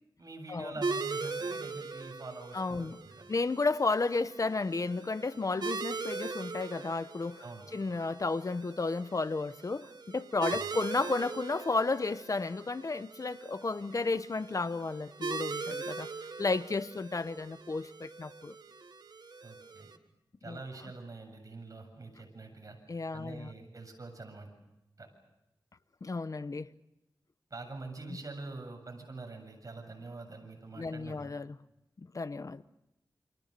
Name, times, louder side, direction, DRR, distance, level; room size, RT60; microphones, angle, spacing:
voice 1, 0.2-2.9 3.1-3.3 7.4-7.7 10.5-10.7 19.4-19.9 20.4-22.8 23.1-24.5 25.0-25.1 27.5-31.2, right 3 dB, 45° right, 7.7 m, -45 dB
sound 1, 0.8-20.0, right 4 dB, 65° right, 1.5 m, -41 dB
voice 2, 2.5-3.0 3.3-7.4 7.7-16.1 16.4-18.6 20.4-20.6 22.9-23.5 26.0-26.7 30.8-31.6 32.0-32.6, left 3 dB, 45° left, 0.9 m, -33 dB
29.5 x 26.0 x 6.8 m
wide cardioid pair, 90°, 8 cm